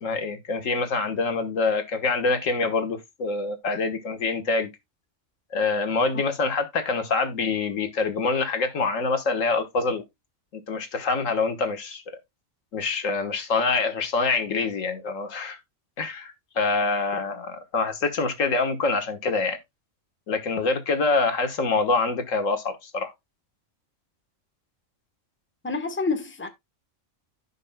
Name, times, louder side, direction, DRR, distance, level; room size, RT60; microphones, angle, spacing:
voice 1, 0.0-4.7 5.5-10.0 10.7-12.0 12.7-15.6 16.0-19.6 20.3-23.1, left 4 dB, 80° left, 1.8 m, -25 dB
voice 2, 25.6-26.5, left 4 dB, 10° left, 1.1 m, -28 dB
15.0 x 5.5 x 2.2 m
omnidirectional pair, 1.3 m